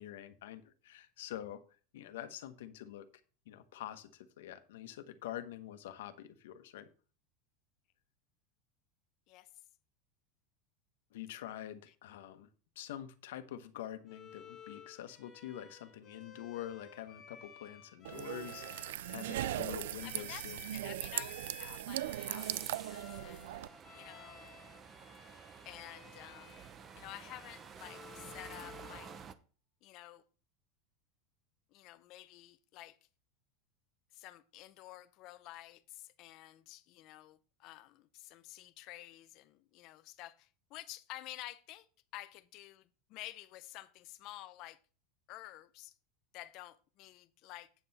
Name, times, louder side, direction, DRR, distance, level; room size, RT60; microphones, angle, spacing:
voice 1, 0.0-1.6 1.9-3.1 3.5-6.9 11.1-12.5 12.7-20.9, left 11 dB, 85° left, 1.1 m, -46 dB
Bowed string instrument, 14.1-29.3, left 8 dB, 20° left, 1.4 m, -55 dB
sound 1, 18.0-23.7, right 14 dB, 90° right, 0.3 m, -39 dB
voice 2, 20.0-23.6 23.9-24.5 25.7-26.6 27.0-29.1 29.8-30.2 31.7-33.0 34.1-44.8 45.3-45.9 46.3-47.7, left 16 dB, 40° left, 0.6 m, -51 dB
sound 2, 21.9-29.3, right 7 dB, 20° right, 0.5 m, -52 dB
8.4 x 7.7 x 4.1 m
supercardioid pair, 175°, 0 cm